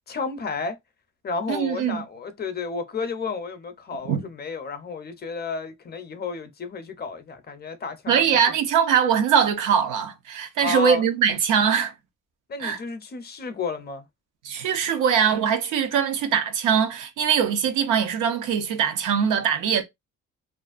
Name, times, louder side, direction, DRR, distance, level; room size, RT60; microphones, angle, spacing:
voice 1, 0.1-0.8 1.2-8.6 10.6-11.0 12.5-14.1, left 4 dB, 35° left, 0.5 m, -32 dB
voice 2, 1.5-2.0 4.0-4.2 8.1-11.9 12.6-12.8 14.4-19.8, right 7 dB, 85° right, 0.6 m, -22 dB
2.5 x 2.1 x 2.4 m
cardioid pair, 90°, 30 cm